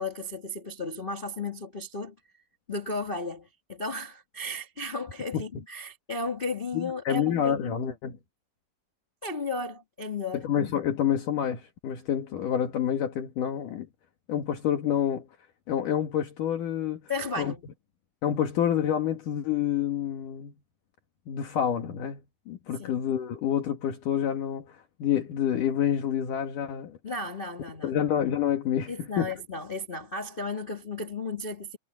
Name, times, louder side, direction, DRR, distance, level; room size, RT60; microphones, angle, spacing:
voice 1, 0.0-2.1 2.7-7.9 9.2-10.5 17.1-17.6 22.8-22.9 27.0-28.0 28.9-31.8, left 3 dB, 25° left, 1.3 m, -34 dB
voice 2, 6.7-8.2 10.3-13.9 14.3-15.3 15.7-17.0 17.4-17.5 18.2-20.5 21.3-27.0 27.8-29.3, left 9 dB, 70° left, 3.3 m, -28 dB
omnidirectional pair, 3.9 m